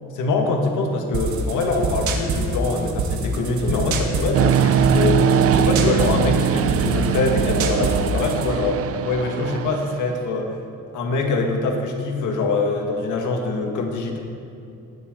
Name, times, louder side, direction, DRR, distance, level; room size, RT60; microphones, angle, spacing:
voice 1, 0.1-10.6 10.9-14.2, left 3 dB, 80° left, 2 dB, 1.8 m, -24 dB
sound 1, 1.1-8.5, right 3 dB, 75° right, 1.6 m, -26 dB
sound 2, 4.3-10.1, right 8 dB, 50° right, 0.5 m, -21 dB
19.5 x 8.0 x 3.8 m, 2.6 s
cardioid pair, 90°, 30 cm